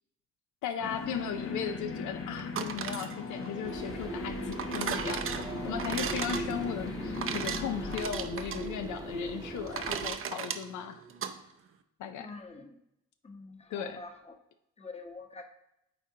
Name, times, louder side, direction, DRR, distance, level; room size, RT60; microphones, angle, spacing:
voice 1, 0.6-5.3 5.6-11.0 12.0-12.4 13.7-14.0, left 8 dB, 75° left, 8 dB, 0.5 m, -37 dB
sound 1, 0.8-8.0, left 3 dB, 45° left, 0.9 m, -39 dB
sound 2, 2.4-11.3, right 7 dB, 45° right, 0.6 m, -37 dB
sound 3, 3.6-10.1, right 2 dB, 10° right, 0.8 m, -39 dB
voice 2, 12.2-12.7 13.2-14.1 14.8-15.4, left 3 dB, 20° left, 4 dB, 0.9 m, -45 dB
9.2 x 3.7 x 2.7 m, 0.80 s
cardioid pair, 90°, 30 cm